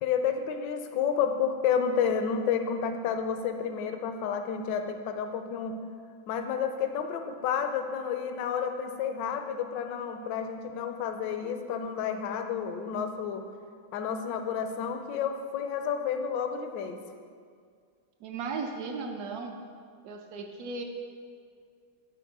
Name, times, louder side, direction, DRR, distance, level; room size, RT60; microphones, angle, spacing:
voice 1, 0.0-5.7 6.3-13.4 13.9-17.0, left 7 dB, 75° left, 7 dB, 1.2 m, -30 dB
voice 2, 18.2-19.5 20.0-20.8, right 4 dB, 70° right, 3 dB, 0.9 m, -36 dB
10.0 x 4.3 x 4.6 m, 2.1 s
omnidirectional pair, 2.2 m